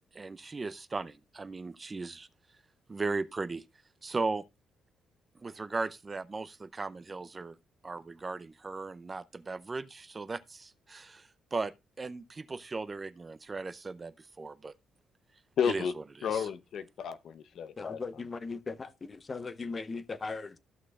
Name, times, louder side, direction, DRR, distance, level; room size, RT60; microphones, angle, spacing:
voice 1, 0.1-2.3 2.9-3.6 4.0-4.4 5.4-7.6 7.8-11.7 12.0-14.7 15.6-16.5, right 3 dB, 30° right, 0.5 m, -37 dB
voice 2, 15.6-15.9 16.2-18.0, left 7 dB, 65° left, 0.7 m, -32 dB
voice 3, 17.8-20.6, left 4 dB, 30° left, 0.8 m, -38 dB
14.0 x 6.2 x 2.4 m
cardioid pair, 90°, 0 cm